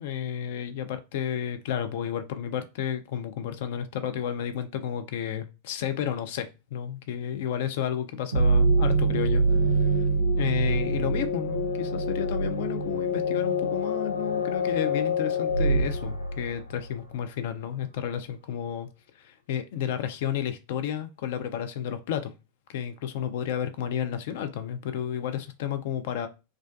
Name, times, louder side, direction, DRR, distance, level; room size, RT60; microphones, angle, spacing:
voice 1, 0.0-10.1 10.3-18.9 19.2-22.3 22.7-26.3, left 9 dB, 55° left, 9 dB, 0.4 m, -32 dB
sound 1, 8.3-17.0, right 1 dB, 80° right, 0.5 m, -25 dB
2.4 x 2.2 x 2.5 m, 0.27 s
figure-of-eight pair, 90°, 0 cm